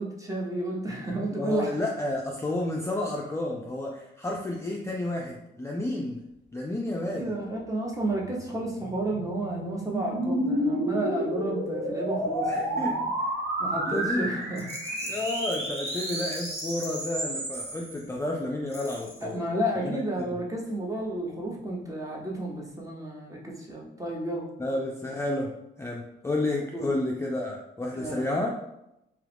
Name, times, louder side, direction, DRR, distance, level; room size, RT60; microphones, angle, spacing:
voice 1, 0.0-1.7 7.2-13.1 13.6-15.1 19.2-24.5 26.7-26.9 27.9-28.5, right 1 dB, 15° right, -2 dB, 0.8 m, -32 dB
voice 2, 1.3-6.2 6.5-7.4 12.5-13.0 13.8-14.3 15.1-19.4 19.8-20.0 20.3-20.4 24.6-25.5 25.8-28.5, left 2 dB, 15° left, -2 dB, 0.4 m, -31 dB
sound 1, 8.2-17.9, right 1 dB, 70° right, 0.8 m, -31 dB
Rattle, 14.5-18.2 18.7-19.4, left 2 dB, 30° left, 0.7 m, -43 dB
2.9 x 2.3 x 3.4 m, 0.84 s
cardioid pair, 90°, 20 cm